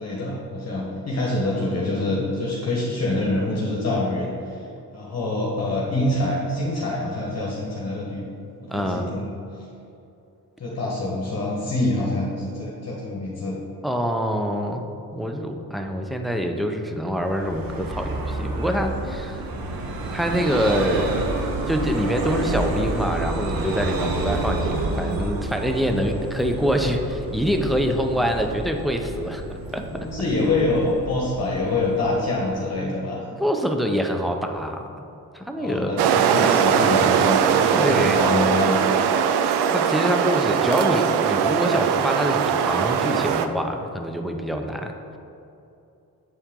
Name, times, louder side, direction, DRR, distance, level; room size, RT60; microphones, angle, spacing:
voice 1, 0.0-4.6 4.9-8.2 8.6-9.3 10.6-13.6 29.9-33.2 35.6-38.8, left 2 dB, 40° left, -4 dB, 1.3 m, -25 dB
voice 2, 8.7-9.1 13.8-14.9 15.1-19.5 20.1-21.3 21.7-29.4 29.7-30.1 33.3-34.9 35.3-36.0 37.7-38.2 39.7-45.2, equal, ahead, 4 dB, 0.6 m, -25 dB
Vehicle, 17.2-32.6, right 2 dB, 60° right, 1.0 m, -29 dB
sound 1, 36.0-43.5, right 7 dB, 85° right, 0.5 m, -20 dB
8.2 x 4.4 x 3.7 m, 2.8 s
cardioid pair, 75°, 40 cm